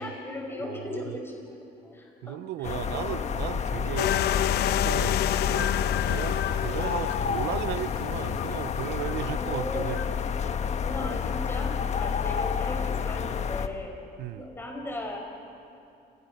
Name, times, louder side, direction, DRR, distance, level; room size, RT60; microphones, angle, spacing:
voice 1, 0.0-1.5 1.8-3.5 9.3-10.0 10.8-13.9 14.3-15.2, left 2 dB, 15° left, 0 dB, 6.6 m, -37 dB
voice 2, 0.7-1.2 2.2-4.1 4.6-5.2 5.5-5.7 6.0-10.0 14.2-14.5, right 14 dB, 80° right, 15 dB, 0.6 m, -35 dB
sound 1, 2.6-13.7, left 6 dB, 40° left, 1.3 m, -29 dB
sound 2, 4.0-10.1, left 12 dB, 75° left, 0.8 m, -30 dB
29.5 x 22.0 x 6.7 m, 2.7 s
cardioid pair, 110°, 17 cm